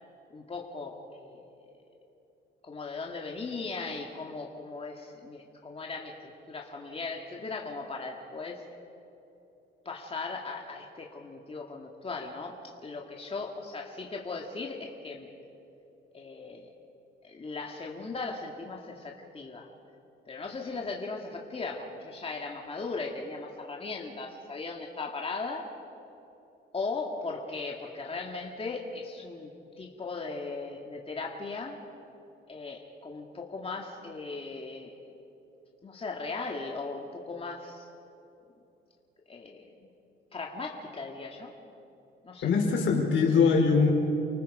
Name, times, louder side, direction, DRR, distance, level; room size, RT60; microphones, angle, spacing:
voice 1, 0.3-1.4 2.6-8.6 9.9-15.3 16.1-16.7 17.2-19.7 20.3-25.7 26.7-31.8 32.5-35.1 35.8-37.9 39.3-39.9 40.3-41.6 42.2-42.5, left 3 dB, 30° left, 0 dB, 2.2 m, -38 dB
voice 2, 42.4-43.9, left 5 dB, 70° left, 1 dB, 4.5 m, -22 dB
29.5 x 19.0 x 5.0 m, 2.9 s
cardioid pair, 90°, 20 cm